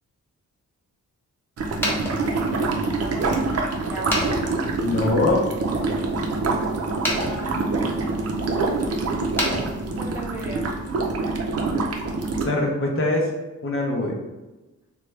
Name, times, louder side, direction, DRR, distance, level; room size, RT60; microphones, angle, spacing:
sound 1, 1.6-12.5, right 3 dB, 50° right, 0.5 m, -25 dB
sound 2, 1.7-10.4, equal, 5° left, 1.0 m, -33 dB
voice 1, 2.2-3.4 3.9-4.2 6.2-6.5 7.2-8.8 9.9-10.7, right 1 dB, 10° right, -5 dB, 0.6 m, -38 dB
voice 2, 4.8-5.4 12.4-13.3 13.6-14.1, left 2 dB, 45° left, -1 dB, 0.7 m, -22 dB
3.2 x 2.3 x 3.2 m, 1.1 s
wide cardioid pair, 110°, 31 cm